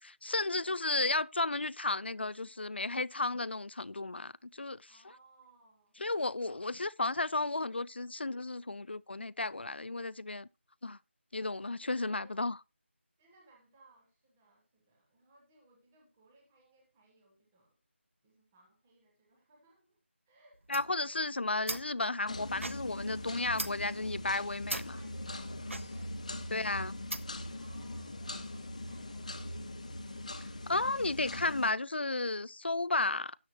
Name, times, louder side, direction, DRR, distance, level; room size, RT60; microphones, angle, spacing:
voice 1, 0.0-4.9 6.0-10.5 10.8-11.0 11.3-12.6 20.7-25.0 26.5-26.9 30.7-33.4, left 2 dB, 60° left, 0.5 m, -33 dB
voice 2, 4.8-6.0 6.5-6.7 12.0-12.5 13.2-17.8 18.2-20.0 20.3-20.8 24.6-26.2 26.6-27.0 27.5-29.7, right 2 dB, 5° right, 0.9 m, -64 dB
sound 1, 20.5-27.5, right 2 dB, 85° right, 1.1 m, -43 dB
sound 2, 22.3-31.7, left 1 dB, 35° left, 1.0 m, -41 dB
13.0 x 9.3 x 2.9 m
figure-of-eight pair, 180°, 7 cm